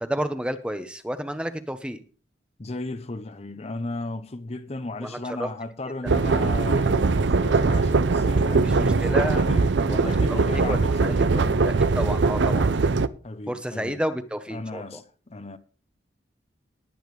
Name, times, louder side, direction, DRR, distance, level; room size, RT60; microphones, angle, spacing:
voice 1, 0.0-2.0 5.0-5.5 8.6-9.4 9.9-10.1 10.7-10.8 11.0-12.7 13.5-15.0, equal, 5° right, 0.9 m, -31 dB
voice 2, 2.6-11.7 13.2-14.0 14.5-15.6, left 2 dB, 35° left, 0.8 m, -35 dB
sound 1, 6.1-13.1, right 4 dB, 75° right, 0.6 m, -21 dB
19.0 x 8.8 x 3.2 m
head